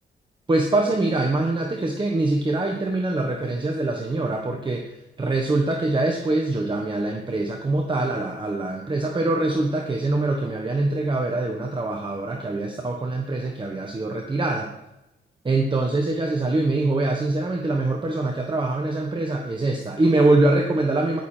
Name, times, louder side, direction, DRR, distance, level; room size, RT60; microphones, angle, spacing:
voice 1, 0.5-14.7 15.4-21.2, right 2 dB, 25° right, 1 dB, 1.3 m, -24 dB
16.5 x 6.8 x 4.4 m, 0.94 s
cardioid pair, 90°, 19 cm